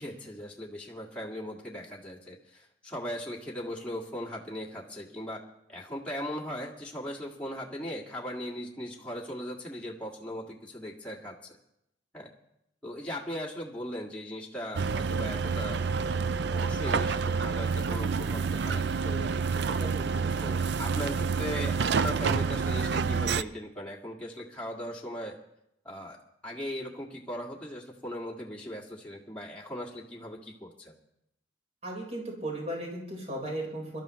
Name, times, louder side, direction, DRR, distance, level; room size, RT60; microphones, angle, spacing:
voice 1, 0.0-5.4 5.7-11.6 12.1-12.3 12.8-16.2 16.5-19.8 20.4-25.4 25.8-26.2 26.4-31.0, equal, 5° left, -4 dB, 1.8 m, -39 dB
sound 1, 14.7-23.4, right 5 dB, 65° right, 0.4 m, -28 dB
voice 2, 19.8-20.5 31.8-34.0, right 1 dB, 35° right, -1 dB, 4.3 m, -36 dB
24.5 x 13.0 x 3.1 m, 0.79 s
head